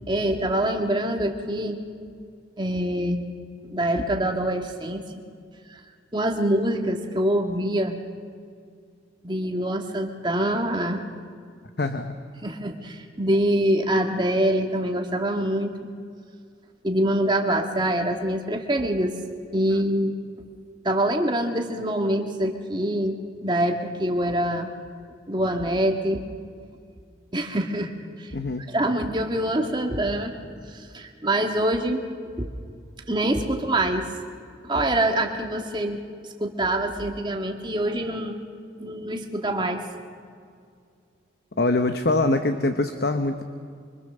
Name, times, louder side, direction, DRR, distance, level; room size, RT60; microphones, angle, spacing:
voice 1, 0.1-1.8 2.6-3.2 3.6-5.0 5.7-5.8 6.1-8.0 9.2-11.0 12.4-15.7 16.8-19.2 19.5-20.1 20.8-24.7 25.3-26.2 27.3-27.9 28.2-28.4 28.7-30.4 30.6-32.0 32.4-32.5 33.1-34.1 34.6-36.0 36.4-38.3 38.8-39.8, right 1 dB, 25° right, 3 dB, 1.7 m, -25 dB
voice 2, 11.8-12.1 28.3-28.7 41.6-43.4, left 2 dB, 55° left, 8 dB, 0.9 m, -23 dB
24.5 x 24.5 x 6.7 m, 2.2 s
head